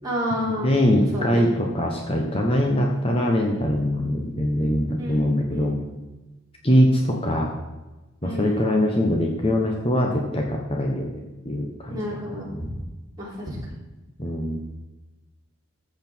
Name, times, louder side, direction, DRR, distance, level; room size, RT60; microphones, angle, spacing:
voice 1, 0.0-0.8 1.1-1.4 5.0-5.8 8.2-8.7 11.9-12.5 13.2-13.6, left 1 dB, 20° right, -5 dB, 3.8 m, -30 dB
voice 2, 0.6-5.8 6.6-7.5 8.2-12.0 12.5-12.7 14.2-14.6, equal, 25° left, 1 dB, 1.2 m, -22 dB
14.0 x 7.8 x 4.6 m, 1.1 s
head